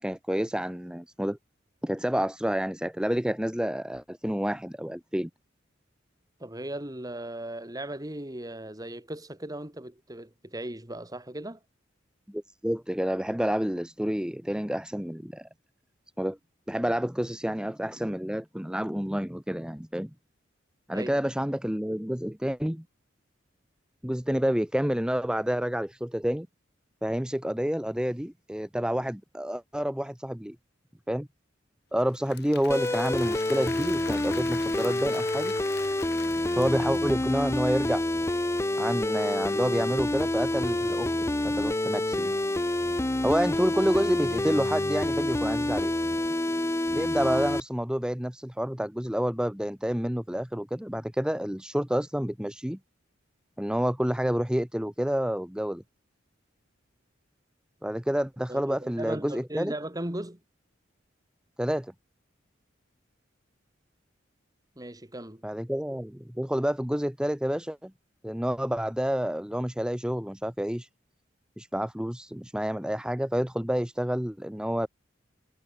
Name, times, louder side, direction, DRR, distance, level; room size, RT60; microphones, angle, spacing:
voice 1, 0.0-1.4 1.8-5.3 12.3-15.5 16.2-16.4 16.7-20.1 20.9-22.8 24.0-26.5 27.0-30.6 31.1-31.3 31.9-35.5 36.5-38.0 38.8-41.1 41.4-42.3 43.2-45.9 46.9-52.8 53.6-55.8 57.8-59.7 61.6-61.9 65.4-67.9 68.2-70.9 71.6-74.9, equal, 5° right, 1.0 m, -29 dB
voice 2, 6.4-11.6 20.9-21.2 58.5-60.4 64.8-65.4, right 1 dB, 20° right, 2.9 m, -37 dB
Applause / Crowd, 32.0-37.3, left 8 dB, 55° left, 2.1 m, -45 dB
sound 1, 32.7-47.6, left 1 dB, 15° left, 0.6 m, -28 dB
head